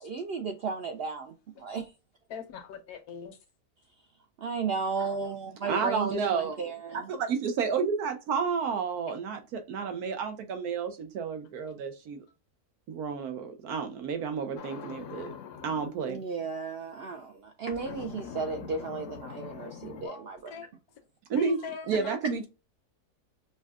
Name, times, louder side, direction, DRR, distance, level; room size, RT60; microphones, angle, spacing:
voice 1, 0.0-1.8 4.4-7.1 16.0-20.5 21.7-21.9, right 4 dB, 70° right, 0.5 m, -34 dB
voice 2, 2.3-3.4 20.0-20.7 21.4-22.2, left 7 dB, 85° left, 1.1 m, -41 dB
voice 3, 5.7-6.6 6.9-12.2 12.9-15.3 15.6-16.2 21.3-21.6 21.9-22.5, right 6 dB, 90° right, 1.3 m, -31 dB
sound 1, 14.6-16.0 17.7-20.1, left 7 dB, 70° left, 0.8 m, -43 dB
5.4 x 2.3 x 2.4 m
omnidirectional pair, 1.6 m